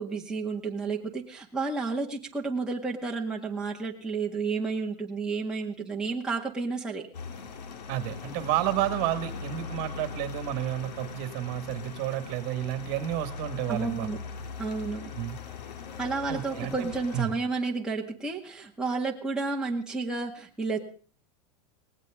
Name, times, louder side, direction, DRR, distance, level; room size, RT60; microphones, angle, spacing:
voice 1, 0.0-7.0 13.7-14.2 14.6-15.1 16.0-20.8, right 4 dB, 5° right, -2 dB, 1.8 m, -31 dB
sound 1, 7.1-17.2, left 5 dB, 90° left, 2.0 m, -40 dB
voice 2, 7.9-14.1 15.2-15.4 16.3-17.3, right 14 dB, 45° right, 9 dB, 2.0 m, -31 dB
19.0 x 16.5 x 3.8 m, 0.41 s
supercardioid pair, 145°, 21 cm